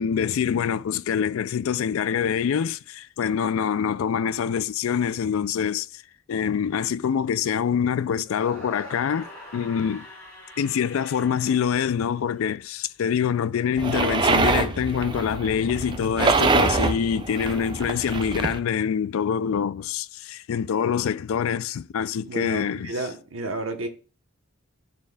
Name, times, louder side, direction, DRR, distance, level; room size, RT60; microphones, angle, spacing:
voice 1, 0.0-6.0 6.3-10.1 10.6-22.9, left 7 dB, 75° left, 0.3 m, -25 dB
sound 1, 8.2-12.4, left 1 dB, 10° left, 2.7 m, -43 dB
sound 2, 13.8-18.6, right 3 dB, 20° right, 0.4 m, -24 dB
voice 2, 22.3-23.9, right 2 dB, 70° right, 1.1 m, -31 dB
13.0 x 4.5 x 2.3 m
head